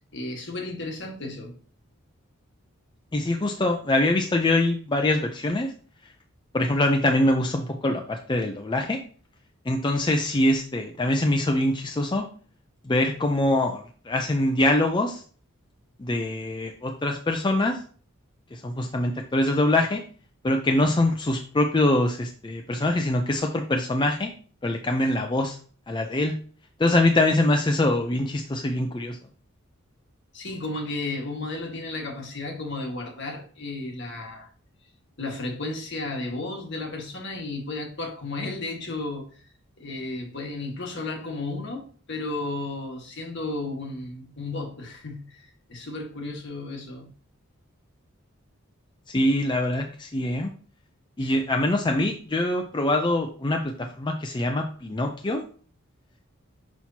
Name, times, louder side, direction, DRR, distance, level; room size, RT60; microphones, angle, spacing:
voice 1, 0.1-1.6 30.3-34.5 35.2-39.3 39.8-47.1 51.2-51.3, left 2 dB, 55° left, 1.6 m, -33 dB
voice 2, 3.1-5.7 6.5-9.0 9.7-12.2 12.8-15.2 16.0-17.8 18.5-20.0 20.4-24.3 24.6-25.6 25.9-26.3 26.8-29.2 49.1-50.5 51.2-55.4, left 1 dB, 20° left, 0.5 m, -24 dB
6.2 x 5.8 x 2.8 m
head